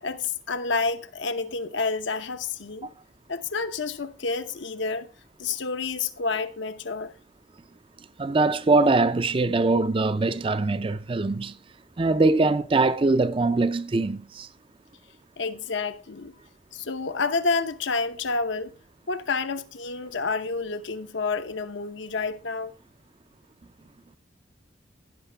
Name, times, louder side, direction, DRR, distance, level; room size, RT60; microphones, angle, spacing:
voice 1, 0.0-2.9 3.3-5.1 5.4-7.1 15.4-16.3 16.7-18.7 19.1-22.7, left 4 dB, 75° left, 0.8 m, -29 dB
voice 2, 8.2-11.6 12.0-14.5, right 3 dB, 25° right, 0.4 m, -22 dB
15.5 x 5.9 x 3.3 m
head